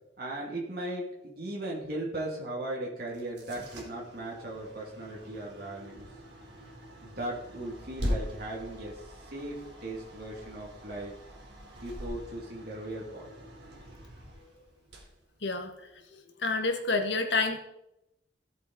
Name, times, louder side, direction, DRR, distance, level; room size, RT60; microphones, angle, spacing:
voice 1, 0.2-6.1 7.0-11.1 11.7-13.3, right 1 dB, 60° right, -4 dB, 2.9 m, -37 dB
sound 1, 3.1-16.0, equal, 75° right, 4.0 m, -42 dB
voice 2, 15.4-15.7 16.1-17.6, left 3 dB, 85° left, 5 dB, 1.8 m, -29 dB
16.5 x 7.7 x 4.3 m, 0.86 s
head